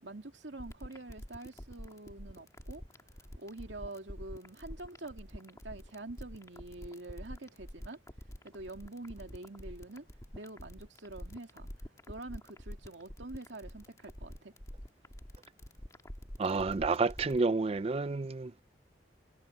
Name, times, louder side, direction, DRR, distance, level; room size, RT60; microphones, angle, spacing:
voice 1, 0.0-2.8 3.4-8.0 8.4-10.1 10.3-11.7 12.1-14.5, right 2 dB, 85° right, 2.5 m, -46 dB
sound 1, 0.6-17.4, equal, 20° left, 1.7 m, -46 dB
voice 2, 16.4-18.6, right 3 dB, 35° right, 0.4 m, -30 dB
head